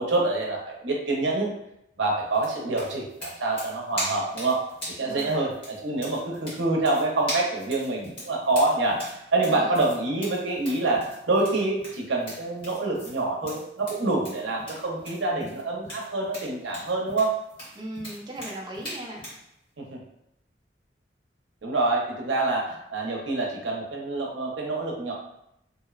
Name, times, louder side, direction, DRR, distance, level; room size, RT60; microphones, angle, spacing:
voice 1, 0.0-1.5 2.0-4.6 5.0-9.0 9.3-17.3 19.9-20.0 21.6-25.1, right 2 dB, 90° right, -1 dB, 0.6 m, -26 dB
sound 1, 2.3-19.4, equal, 30° left, 1.1 m, -39 dB
voice 2, 5.0-5.5 9.4-9.8 17.7-19.3, right 1 dB, 25° right, -2 dB, 0.4 m, -38 dB
2.7 x 2.0 x 2.3 m, 0.79 s
head